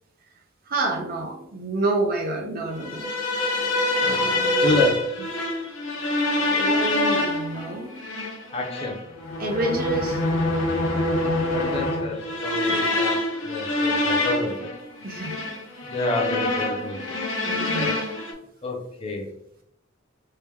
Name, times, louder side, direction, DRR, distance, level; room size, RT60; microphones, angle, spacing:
voice 1, 0.7-3.5 4.0-5.3 6.4-7.9 9.4-10.2 12.7-13.0 15.0-15.5 16.5-16.6 17.5-18.0, right 2 dB, 50° right, 2 dB, 0.8 m, -29 dB
sound 1, 2.8-18.3, left 1 dB, 80° left, 0.8 m, -25 dB
voice 2, 4.6-5.0 8.5-8.9 11.5-14.7 15.9-17.1 17.8-17.9 18.6-19.3, left 2 dB, 30° left, 0 dB, 0.6 m, -29 dB
3.3 x 2.9 x 3.5 m, 0.75 s
head